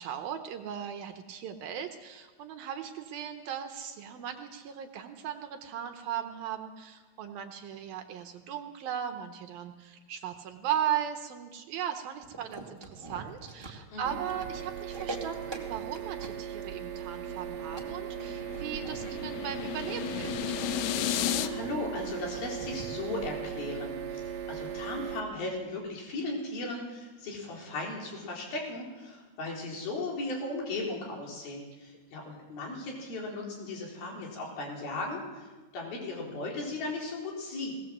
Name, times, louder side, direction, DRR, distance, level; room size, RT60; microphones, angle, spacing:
voice 1, 0.0-20.4, right 9 dB, 70° right, 6 dB, 2.7 m, -37 dB
sound 1, 12.2-22.9, right 2 dB, 10° right, 1.2 m, -45 dB
sound 2, 14.0-25.2, right 9 dB, 55° right, 2.1 m, -38 dB
sound 3, 17.2-21.5, left 13 dB, 90° left, 2.9 m, -34 dB
voice 2, 21.2-37.7, left 2 dB, 65° left, -1 dB, 5.8 m, -37 dB
19.0 x 18.5 x 7.5 m, 1.2 s
omnidirectional pair, 4.6 m